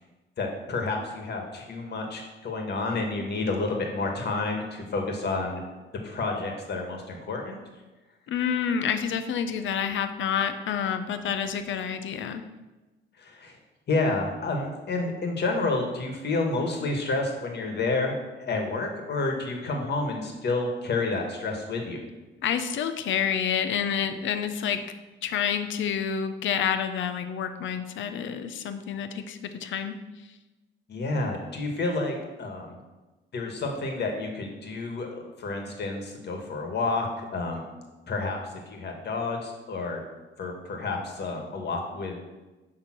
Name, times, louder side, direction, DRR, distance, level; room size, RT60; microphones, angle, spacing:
voice 1, 0.4-5.6 6.0-7.6 13.2-13.5 13.9-22.0 30.9-32.8 33.3-35.1 35.4-37.6 38.1-38.4 38.7-40.0 40.4-42.2, left 3 dB, 55° left, 2 dB, 1.9 m, -29 dB
voice 2, 8.3-12.4 22.4-24.8 25.2-29.9, left 8 dB, 75° left, 9 dB, 0.8 m, -28 dB
11.0 x 3.7 x 6.1 m, 1.1 s
cardioid pair, 90°, 20 cm